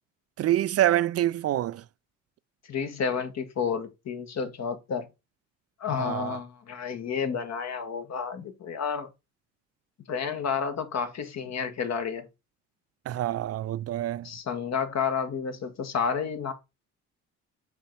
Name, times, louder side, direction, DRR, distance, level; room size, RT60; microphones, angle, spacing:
voice 1, 0.4-1.8 6.0-6.4 13.1-14.3, right 13 dB, 45° right, 0.4 m, -26 dB
voice 2, 2.7-5.1 5.8-9.1 10.1-12.3 14.2-16.5, left 6 dB, 50° left, 1.5 m, -30 dB
5.7 x 4.1 x 4.5 m
supercardioid pair, 70°, 34 cm